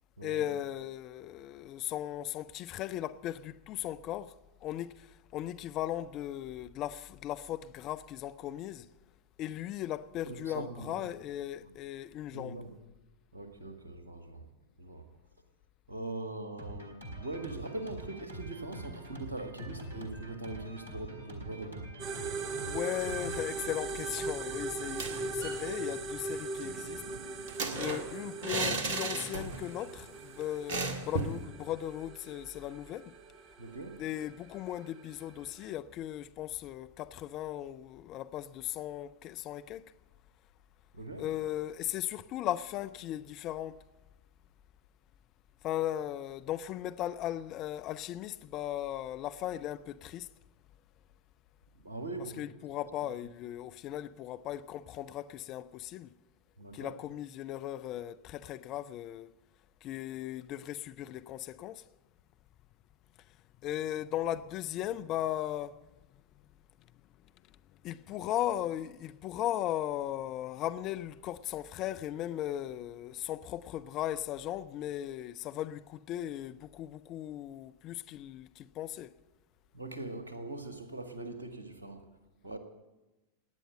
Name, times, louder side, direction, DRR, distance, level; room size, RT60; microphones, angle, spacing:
voice 1, 0.2-4.3 4.6-5.1 5.3-8.9 9.4-12.6 22.7-27.0 27.8-33.1 34.0-39.9 41.2-43.8 45.6-50.3 52.2-56.1 56.7-59.3 59.8-61.8 63.6-65.8 67.8-79.1, left 12 dB, 35° left, 0.5 m, -37 dB
voice 2, 10.3-11.1 11.6-11.7 12.3-12.7 13.3-14.5 14.8-15.0 15.9-22.0 27.7-28.0 33.6-34.0 40.9-41.3 51.8-52.5 56.6-57.0 79.7-82.0 82.4-82.6, right 2 dB, 75° right, 1.8 m, -41 dB
Drum kit, 16.6-24.4, right 1 dB, 90° left, 2.9 m, -45 dB
sound 1, 22.0-35.7, right 3 dB, 35° right, 0.9 m, -40 dB
sound 2, 24.8-25.6 25.9-26.0 26.3-29.8 30.0-30.2 30.7-31.4, right 3 dB, 50° right, 1.8 m, -35 dB
18.0 x 9.9 x 7.9 m
figure-of-eight pair, 90°, 0 cm